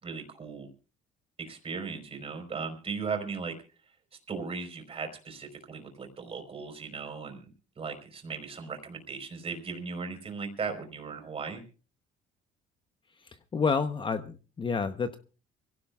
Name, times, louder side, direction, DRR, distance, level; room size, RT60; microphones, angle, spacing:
voice 1, 0.0-0.7 1.4-3.5 4.3-11.6, right 5 dB, 35° right, 5 dB, 4.1 m, -37 dB
voice 2, 13.2-15.2, left 5 dB, 30° left, 10 dB, 0.9 m, -29 dB
25.0 x 17.0 x 2.4 m, 0.36 s
cardioid pair, 110°, 17 cm